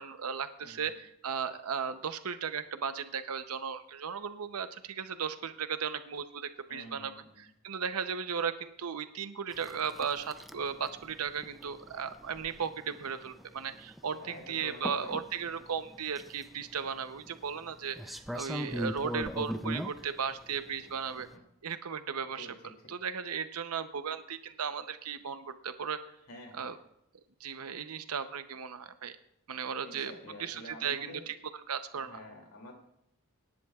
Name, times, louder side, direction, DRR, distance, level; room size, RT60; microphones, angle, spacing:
voice 1, 0.0-7.1 7.6-21.3 21.6-22.5 22.9-26.0 26.6-26.8 27.4-29.2 29.5-30.1 30.4-31.4 31.7-32.1, right 6 dB, 90° right, 10 dB, 0.7 m, -36 dB
voice 2, 0.6-0.9 6.7-7.5 14.2-15.2 18.6-18.9 21.3-21.4 22.4-22.7 26.3-26.7 29.8-31.3 31.9-32.7, left 1 dB, 70° left, 1 dB, 2.6 m, -48 dB
Pouring Milk & Espresso, 9.5-21.4, equal, ahead, 0.4 m, -41 dB
24.5 x 10.5 x 2.4 m, 0.76 s
head